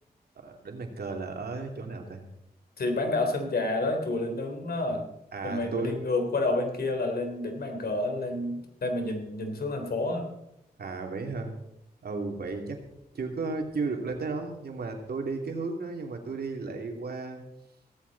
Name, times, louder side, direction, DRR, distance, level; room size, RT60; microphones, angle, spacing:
voice 1, 0.4-2.2 5.3-5.9 10.8-11.5 12.0-12.8 13.1-17.4, right 3 dB, 75° right, 3 dB, 2.9 m, -34 dB
voice 2, 2.8-5.1 5.4-10.3, left 2 dB, 70° left, 4 dB, 3.6 m, -29 dB
17.0 x 14.5 x 4.2 m, 0.81 s
cardioid pair, 65°, 16 cm